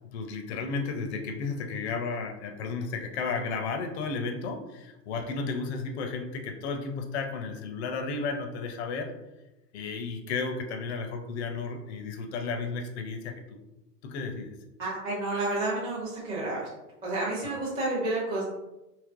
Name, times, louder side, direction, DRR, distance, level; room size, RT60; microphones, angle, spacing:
voice 1, 0.1-9.1 9.7-13.4 14.0-14.5 17.4-17.6, left 4 dB, 45° left, 4 dB, 0.5 m, -33 dB
voice 2, 14.8-16.7 17.0-18.4, right 2 dB, 10° right, -8 dB, 0.6 m, -30 dB
3.2 x 2.8 x 2.4 m, 0.99 s
hypercardioid pair, 120°, 49 cm